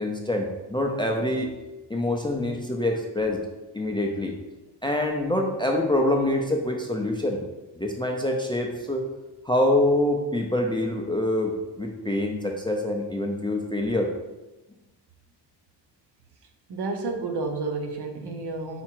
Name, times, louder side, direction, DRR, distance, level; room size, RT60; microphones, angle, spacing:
voice 1, 0.0-1.5 1.9-3.4 3.7-4.3 4.8-7.4 7.8-9.0 9.4-14.1, left 1 dB, 10° left, 1 dB, 0.4 m, -25 dB
voice 2, 16.7-18.8, right 3 dB, 65° right, 4 dB, 0.9 m, -30 dB
4.8 x 4.3 x 4.5 m, 1.0 s
wide cardioid pair, 175°, 43 cm